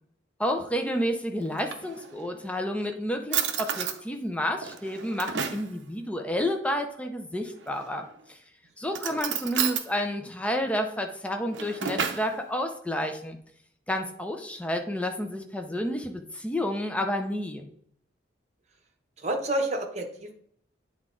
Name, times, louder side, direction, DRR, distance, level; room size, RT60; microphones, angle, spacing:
voice 1, 0.4-8.4 8.8-13.4 13.9-17.7, equal, 5° left, 4 dB, 0.6 m, -30 dB
Drawer open or close, 1.4-2.4 2.9-3.0 3.3-4.0 4.6-5.7 7.6-8.1 8.9-9.9 11.3-12.3, right 8 dB, 65° right, 0.6 m, -31 dB
voice 2, 19.2-20.3, right 1 dB, 35° right, 3 dB, 1.0 m, -29 dB
8.7 x 3.6 x 3.8 m, 0.65 s
head